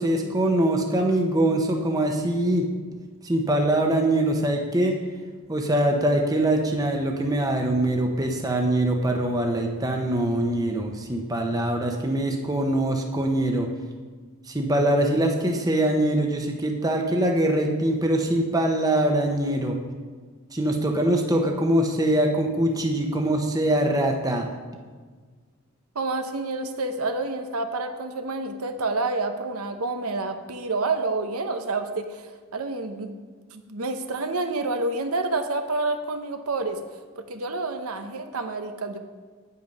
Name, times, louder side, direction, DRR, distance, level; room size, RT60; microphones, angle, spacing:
voice 1, 0.0-2.7 3.2-5.0 5.5-13.7 14.5-19.8 20.5-24.5, right 1 dB, 15° right, 2 dB, 0.9 m, -23 dB
voice 2, 25.9-33.1 33.5-36.8 37.2-39.0, right 3 dB, 85° right, 7 dB, 0.8 m, -28 dB
9.1 x 8.5 x 5.3 m, 1.5 s
head